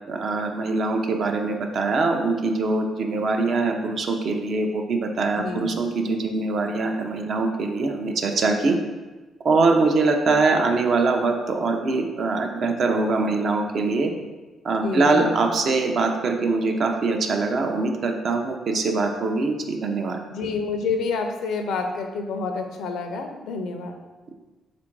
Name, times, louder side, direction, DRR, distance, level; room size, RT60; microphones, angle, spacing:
voice 1, 0.1-8.8 9.4-14.1 14.6-20.2, right 3 dB, 55° right, 4 dB, 0.5 m, -23 dB
voice 2, 5.3-5.7 14.8-15.4 20.3-24.0, left 4 dB, 80° left, 5 dB, 0.4 m, -28 dB
3.6 x 2.5 x 4.4 m, 1.2 s
cardioid pair, 90°, 0 cm